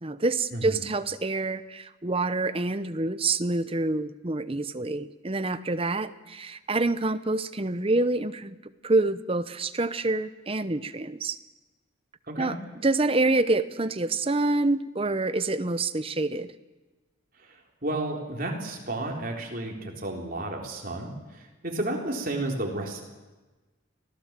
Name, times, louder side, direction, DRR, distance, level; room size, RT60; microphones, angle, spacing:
voice 1, 0.0-8.6 8.8-11.4 12.4-12.6 12.8-16.5, right 2 dB, 30° right, 13 dB, 0.8 m, -27 dB
voice 2, 17.4-23.0, right 2 dB, 45° right, 1 dB, 3.8 m, -32 dB
25.5 x 17.0 x 7.5 m, 1.2 s
head